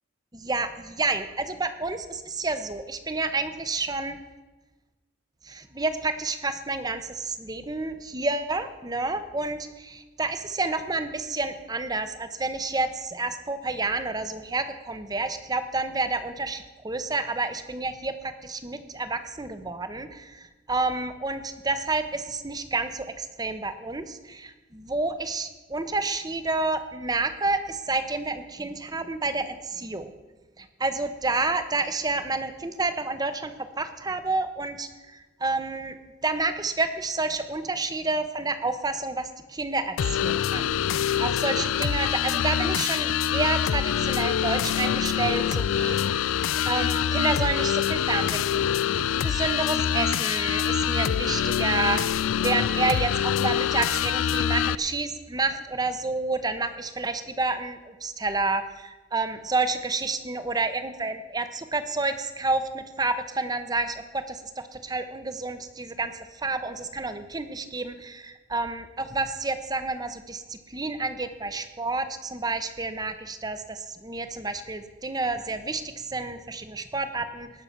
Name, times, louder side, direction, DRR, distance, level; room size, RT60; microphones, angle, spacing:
voice 1, 0.3-4.2 5.4-30.1 30.6-36.0 36.2-48.4 48.7-52.0 52.4-77.5, right 3 dB, 20° right, 10 dB, 0.8 m, -29 dB
sound 1, 40.0-54.7, left 9 dB, 85° left, 0.4 m, -25 dB
18.5 x 6.7 x 5.9 m, 1.2 s
head